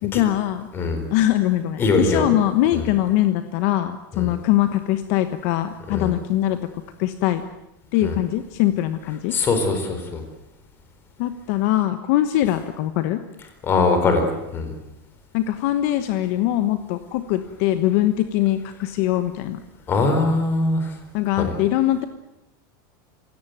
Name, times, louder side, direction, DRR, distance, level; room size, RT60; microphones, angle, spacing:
voice 1, 0.0-0.7 1.1-6.6 7.0-7.4 7.9-9.3 11.2-13.2 15.3-19.6 21.1-22.0, left 14 dB, 45° left, 10 dB, 1.2 m, -22 dB
voice 2, 1.8-2.3 2.7-2.8 4.1-4.3 5.9-6.1 8.0-8.2 9.3-10.2 13.6-14.2 14.5-14.7 19.9-20.9 21.4-21.5, left 3 dB, 20° left, 6 dB, 4.2 m, -21 dB
26.5 x 17.0 x 9.2 m, 0.91 s
supercardioid pair, 175°, 12 cm